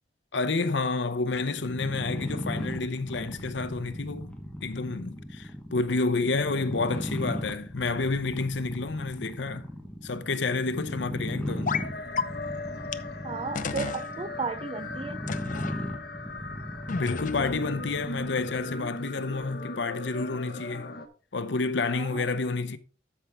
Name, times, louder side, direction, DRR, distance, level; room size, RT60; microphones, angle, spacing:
voice 1, 0.3-4.3 4.6-9.7 10.0-11.8 16.9-20.9 21.3-22.8, left 3 dB, 80° left, 0.8 m, -29 dB
sound 1, 1.5-18.8, equal, 5° left, 1.2 m, -37 dB
sound 2, 11.7-21.1, left 2 dB, 60° left, 1.2 m, -39 dB
sound 3, 11.7-11.9 12.2-12.3 12.9-13.0 13.6-14.0 15.3-15.8 16.9-17.6, left 5 dB, 45° left, 0.6 m, -31 dB
voice 2, 13.2-15.2 22.0-22.3, right 4 dB, 30° right, 0.4 m, -34 dB
13.0 x 5.7 x 3.5 m
head